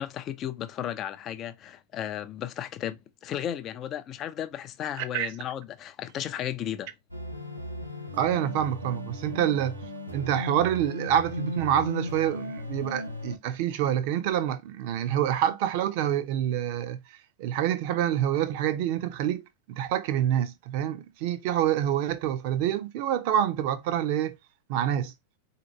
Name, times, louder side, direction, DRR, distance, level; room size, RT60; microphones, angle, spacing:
voice 1, 0.0-6.9, left 10 dB, 30° left, 0.4 m, -34 dB
sound 1, 7.1-13.4, left 2 dB, 90° right, 0.8 m, -37 dB
voice 2, 8.2-9.8 10.1-17.0 17.4-19.4 19.7-24.4 24.7-25.1, right 10 dB, 45° right, 0.6 m, -27 dB
4.1 x 2.9 x 3.0 m
figure-of-eight pair, 90°, 0 cm